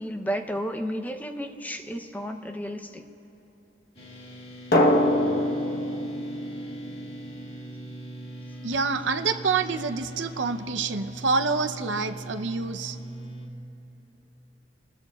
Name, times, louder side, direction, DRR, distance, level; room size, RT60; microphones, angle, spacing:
voice 1, 0.0-3.0, equal, 10° left, 5 dB, 0.6 m, -32 dB
sound 1, 3.9-13.5, right 1 dB, 35° left, 2.0 m, -41 dB
Drum, 4.7-7.4, left 1 dB, 55° left, 1.1 m, -24 dB
voice 2, 8.6-13.0, right 4 dB, 80° right, 8 dB, 0.6 m, -27 dB
29.5 x 20.0 x 2.3 m, 2.9 s
head